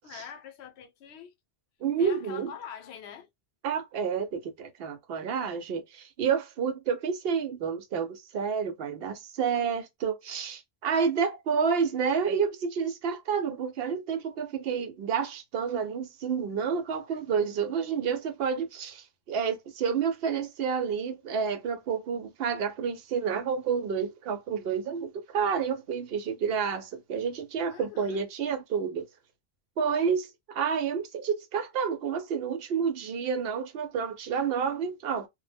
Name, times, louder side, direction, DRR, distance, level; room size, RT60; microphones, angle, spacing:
voice 1, 0.0-1.3 2.0-3.3 27.7-28.2, left 8 dB, 90° left, 0.8 m, -44 dB
voice 2, 1.8-2.5 3.6-29.1 29.8-35.3, right 6 dB, 70° right, 0.7 m, -29 dB
2.1 x 2.0 x 3.3 m
omnidirectional pair, 1.1 m